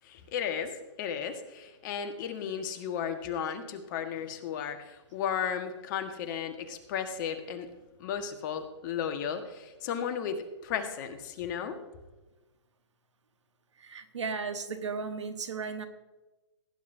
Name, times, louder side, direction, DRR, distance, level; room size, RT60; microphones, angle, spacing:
voice 1, 0.0-7.7 8.0-11.8, left 8 dB, 40° left, 7 dB, 1.5 m, -34 dB
voice 2, 13.8-15.9, right 5 dB, 80° right, 8 dB, 1.4 m, -35 dB
18.0 x 9.8 x 2.7 m, 1.1 s
hypercardioid pair, 130°, 15 cm